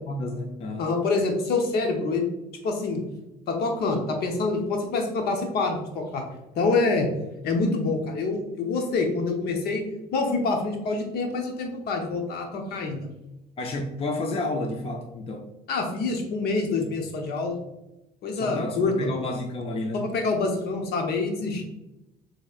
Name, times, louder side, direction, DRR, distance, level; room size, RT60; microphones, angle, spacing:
voice 1, 0.0-0.8 13.6-15.5 18.3-20.1, left 2 dB, 35° left, 3 dB, 0.5 m, -31 dB
voice 2, 0.8-2.3 2.6-3.0 3.5-6.2 6.5-7.1 7.4-9.9 10.1-13.1 15.7-17.6 18.2-19.1 19.9-21.6, left 3 dB, 70° left, 3 dB, 0.9 m, -26 dB
6.4 x 3.2 x 2.4 m, 0.96 s
cardioid pair, 110°, 17 cm